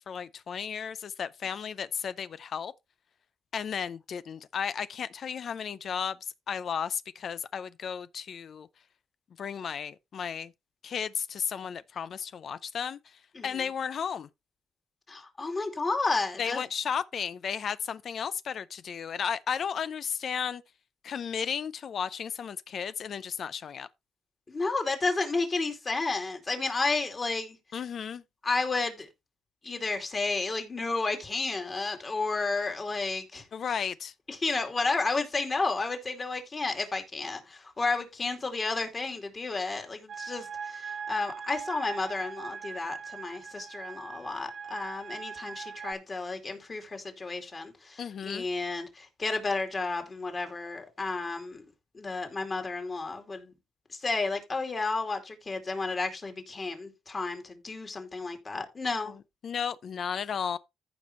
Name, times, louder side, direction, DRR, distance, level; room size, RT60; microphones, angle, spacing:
voice 1, 0.1-2.7 3.5-6.2 6.5-8.7 9.4-10.5 10.8-13.0 13.4-14.3 16.4-20.6 21.0-23.9 27.7-28.2 33.5-34.1 48.0-48.5 59.0-60.6, left 7 dB, 55° left, 0.5 m, -34 dB
voice 2, 15.1-16.6 24.5-27.6 28.4-29.1 29.6-33.4 34.3-51.6 51.9-53.5 54.0-59.1, left 3 dB, 30° left, 2.4 m, -32 dB
sound 1, 40.1-45.9, right 6 dB, 55° right, 0.8 m, -41 dB
14.5 x 5.1 x 3.1 m
cardioid pair, 90°, 0 cm